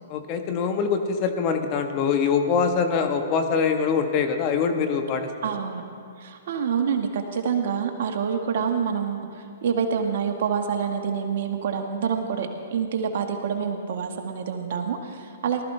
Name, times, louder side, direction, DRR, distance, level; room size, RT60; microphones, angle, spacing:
voice 1, 0.1-5.3, left 6 dB, 40° left, 6 dB, 1.2 m, -23 dB
voice 2, 5.4-5.8 6.2-15.6, right 7 dB, 60° right, 4 dB, 1.4 m, -27 dB
18.5 x 13.0 x 3.3 m, 2.4 s
hypercardioid pair, 120°, 0 cm